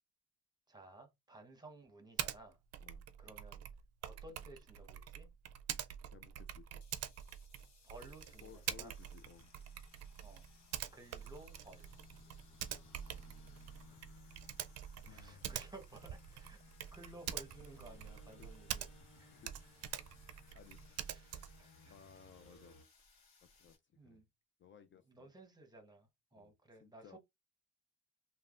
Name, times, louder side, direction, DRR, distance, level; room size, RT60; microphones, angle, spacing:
voice 1, 0.7-2.6 3.2-3.6 4.0-5.3 7.8-8.9 10.2-10.4 10.9-11.9 13.9-14.0 15.1-16.6 16.9-18.9 19.2-19.3 21.1-21.9 24.0-24.2 25.1-27.2, right 2 dB, 15° right, 1.0 m, -56 dB
Typing, 2.2-2.4 2.7-19.2 19.4-21.6, right 10 dB, 55° right, 0.4 m, -46 dB
voice 2, 6.0-6.8 8.4-9.5 14.2-15.7 18.2-18.5 19.3-19.8 20.5-20.8 21.9-22.8 23.5-24.2 24.6-25.3 26.3-26.5 26.8-27.2, left 8 dB, 40° left, 0.4 m, -60 dB
sound 1, 6.8-23.8, left 4 dB, 65° left, 1.3 m, -68 dB
sound 2, 8.5-22.8, left 2 dB, 90° left, 1.1 m, -63 dB
3.2 x 2.2 x 2.4 m
cardioid pair, 90°, 30 cm